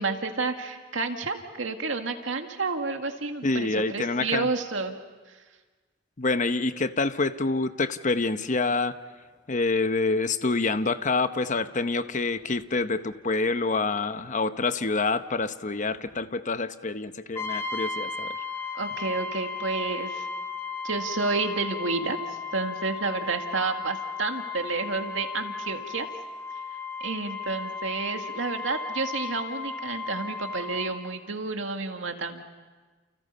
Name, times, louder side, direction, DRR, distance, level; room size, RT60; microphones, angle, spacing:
voice 1, 0.0-4.9 18.7-20.3 20.8-22.2 22.5-26.1 27.0-32.4, right 3 dB, 90° right, 5 dB, 2.1 m, -30 dB
voice 2, 3.4-4.5 6.2-8.9 9.5-18.3, left 3 dB, 40° left, 11 dB, 0.9 m, -27 dB
Brass instrument, 17.3-31.0, left 4 dB, 15° left, 2.1 m, -35 dB
30.0 x 29.5 x 5.6 m, 1.3 s
head